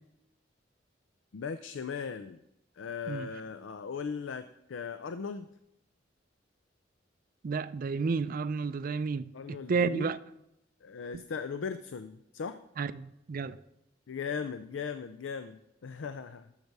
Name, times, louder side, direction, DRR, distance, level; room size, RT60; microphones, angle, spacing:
voice 1, 1.3-2.4 2.8-5.5 9.3-10.1 10.8-12.6 14.1-16.5, left 5 dB, 80° left, 0.4 m, -38 dB
voice 2, 7.4-10.2 11.1-11.2 12.8-13.6, right 4 dB, 50° right, 0.4 m, -32 dB
12.0 x 6.7 x 4.7 m
head